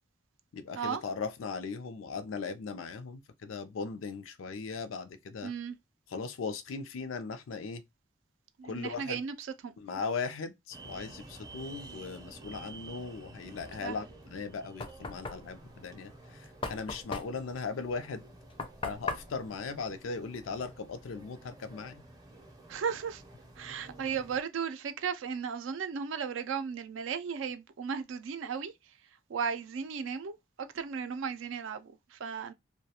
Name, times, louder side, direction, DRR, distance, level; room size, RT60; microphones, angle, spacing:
voice 1, 0.5-5.5 6.1-7.8 8.6-9.2 9.8-18.2 18.8-22.0, left 4 dB, 80° left, 0.4 m, -38 dB
voice 2, 5.4-5.7 8.6-9.7 13.8-13.9 22.7-23.2 23.6-28.7 29.3-30.3 30.7-32.5, right 6 dB, 70° right, 0.4 m, -35 dB
sound 1, 10.7-24.4, right 2 dB, 20° right, 0.5 m, -51 dB
Knock, 14.2-20.7, left 3 dB, 30° left, 0.4 m, -41 dB
2.3 x 2.1 x 2.8 m
head